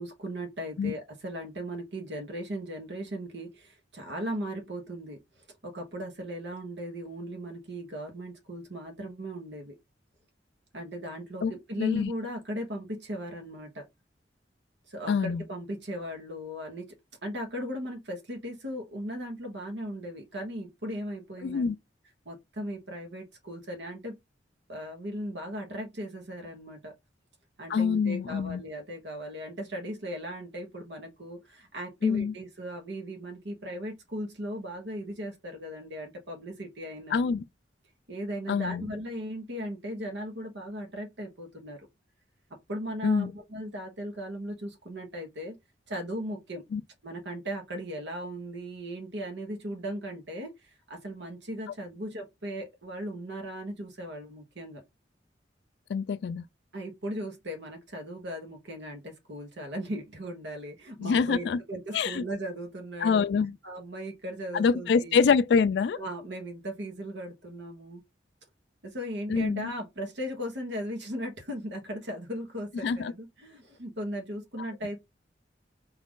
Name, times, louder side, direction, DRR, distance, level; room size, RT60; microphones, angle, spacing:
voice 1, 0.0-9.8 10.7-13.9 14.9-17.0 17.2-21.7 22.3-24.2 24.7-26.9 27.6-37.2 38.1-41.8 42.7-45.6 45.9-46.6 47.0-54.8 56.7-63.3 63.6-65.2 66.0-68.0 68.8-75.0, equal, 75° right, 1.0 m, -37 dB
voice 2, 11.8-12.1 15.1-15.4 21.4-21.8 27.7-28.6 32.0-32.3 37.1-37.4 38.5-38.8 43.0-43.3 46.7-46.8 55.9-56.4 61.0-61.6 61.9-62.2 63.0-63.5 64.5-66.0 69.3-69.7 72.8-73.1, left 6 dB, 65° left, 0.3 m, -25 dB
4.7 x 2.5 x 3.6 m
head